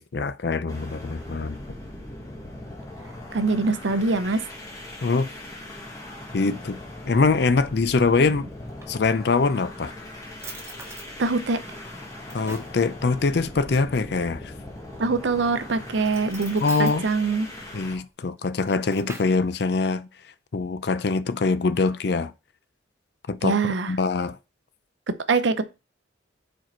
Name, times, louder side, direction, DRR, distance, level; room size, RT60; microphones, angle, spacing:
voice 1, 0.0-1.6 5.0-5.3 6.3-6.8 7.1-8.5 8.9-9.9 12.3-14.5 16.6-17.0 17.7-20.1 20.5-22.3 23.3-23.6 23.9-24.4, left 4 dB, 55° left, 0.5 m, -23 dB
sound 1, 0.7-18.0, left 1 dB, 15° left, 1.2 m, -40 dB
voice 2, 3.3-4.4 11.2-11.6 15.0-17.5 23.4-23.9 25.3-25.6, right 3 dB, 70° right, 0.6 m, -23 dB
Drawer open or close, 8.5-9.5 10.0-10.1 10.4-11.1 11.7-12.8 14.7-15.2 16.0-17.0 18.4-19.4, right 3 dB, 15° right, 0.9 m, -43 dB
4.8 x 4.5 x 4.5 m
head